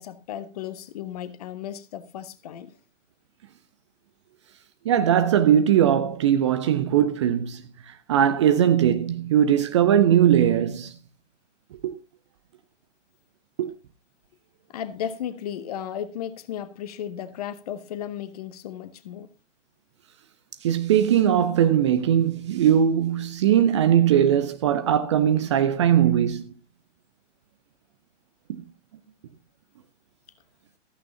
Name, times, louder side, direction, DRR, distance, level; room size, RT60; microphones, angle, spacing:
voice 1, 0.0-2.7 14.7-19.3, left 10 dB, 30° left, 1.1 m, -35 dB
voice 2, 4.8-10.9 11.8-11.9 13.6-13.7 20.6-26.5, right 9 dB, 25° right, 0.7 m, -20 dB
15.0 x 14.0 x 2.7 m
figure-of-eight pair, 125°, 38 cm